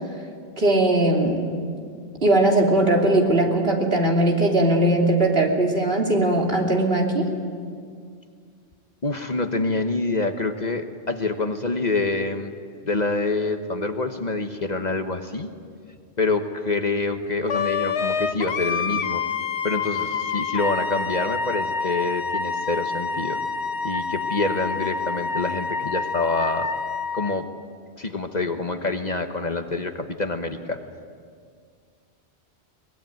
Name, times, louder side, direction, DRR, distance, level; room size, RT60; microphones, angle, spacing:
voice 1, 0.6-1.5 2.2-7.3, right 1 dB, 60° right, 0 dB, 3.2 m, -19 dB
voice 2, 9.0-12.5 12.8-15.5 16.2-19.2 19.6-23.4 23.8-26.7 27.1-27.5 28.0-30.8, left 3 dB, 40° left, 6 dB, 1.3 m, -26 dB
Wind instrument woodwind instrument, 17.5-27.4, left 5 dB, 75° left, 1.2 m, -27 dB
23.0 x 21.0 x 9.2 m, 2.1 s
omnidirectional pair, 1.1 m